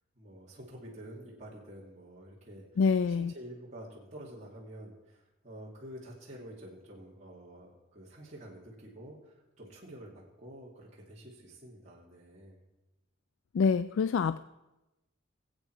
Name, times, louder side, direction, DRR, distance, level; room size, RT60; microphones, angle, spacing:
voice 1, 0.1-12.6, right 1 dB, 35° right, -5 dB, 2.4 m, -49 dB
voice 2, 2.8-3.3 13.5-14.4, left 5 dB, 70° left, 14 dB, 0.3 m, -26 dB
21.5 x 8.2 x 4.6 m, 1.0 s
head